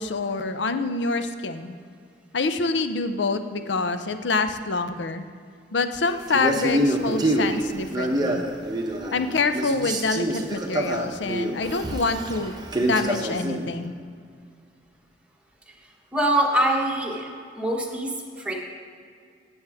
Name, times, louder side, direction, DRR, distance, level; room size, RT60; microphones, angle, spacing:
voice 1, 0.0-1.8 2.3-5.3 5.7-8.4 9.1-14.0, left 3 dB, 80° left, 9 dB, 0.6 m, -26 dB
Male speech man speaking, 6.3-9.3 9.5-13.7, right 1 dB, 25° right, 0.9 m, -26 dB
voice 2, 15.7-17.3 17.5-18.5, right 1 dB, 5° right, -1 dB, 1.3 m, -24 dB
15.5 x 7.1 x 3.5 m, 2.2 s
head